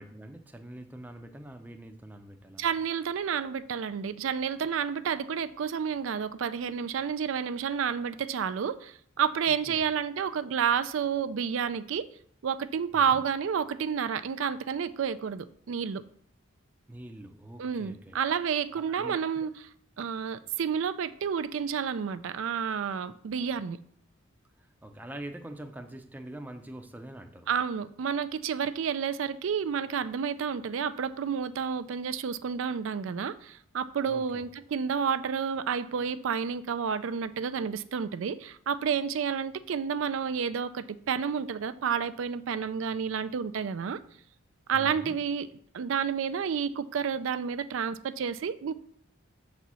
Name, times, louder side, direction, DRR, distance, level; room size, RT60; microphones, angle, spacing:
voice 1, 0.0-2.7 9.7-9.8 12.9-13.2 16.9-18.2 18.7-19.5 24.8-27.5 34.1-34.5 44.7-45.2, right 1 dB, 10° right, 0.5 m, -44 dB
voice 2, 2.6-12.1 12.4-16.0 17.6-19.5 20.0-23.8 27.5-44.0 44.7-45.5 45.7-48.7, right 7 dB, 75° right, 0.4 m, -30 dB
6.9 x 4.2 x 6.1 m
head